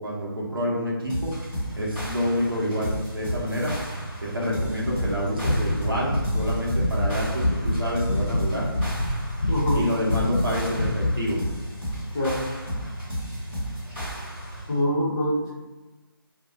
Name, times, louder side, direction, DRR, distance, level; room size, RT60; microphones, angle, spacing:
voice 1, 0.0-1.3 1.8-3.7 4.2-8.7 9.7-11.4, equal, 65° right, -4 dB, 0.9 m, -28 dB
sound 1, 1.1-14.7, equal, 5° right, 0.9 m, -34 dB
sound 2, 1.5-14.6, right 2 dB, 30° right, 1.1 m, -40 dB
sound 3, 4.8-7.8 8.0-10.5 10.7-11.2, left 1 dB, 70° left, 0.5 m, -25 dB
voice 2, 9.5-9.8 12.1-12.4 14.7-15.5, equal, 15° left, -9 dB, 0.6 m, -24 dB
2.5 x 2.1 x 2.6 m, 1.2 s
figure-of-eight pair, 155°, 13 cm